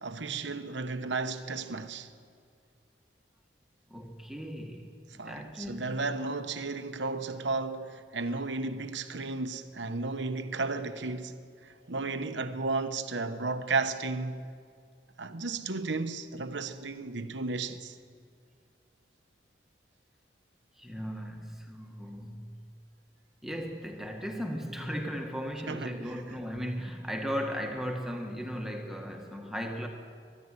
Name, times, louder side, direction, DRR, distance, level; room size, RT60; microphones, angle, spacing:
voice 1, 0.0-2.1 5.2-14.4 15.2-18.0 25.7-26.2, right 3 dB, 75° right, 1.1 m, -34 dB
voice 2, 3.9-4.9 5.2-6.0 20.8-22.6 23.4-29.9, equal, ahead, 1.4 m, -36 dB
24.0 x 11.0 x 9.8 m
head